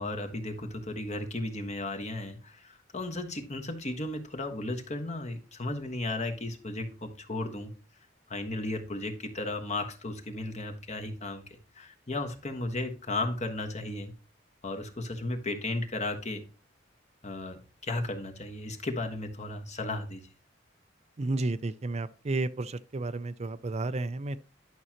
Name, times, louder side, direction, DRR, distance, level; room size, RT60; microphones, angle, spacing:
voice 1, 0.0-7.7 8.3-11.4 11.7-14.1 14.6-16.4 17.2-20.2, left 2 dB, 40° left, 1.4 m, -35 dB
voice 2, 21.2-24.4, right 2 dB, 35° right, 0.5 m, -32 dB
11.0 x 6.1 x 2.9 m
head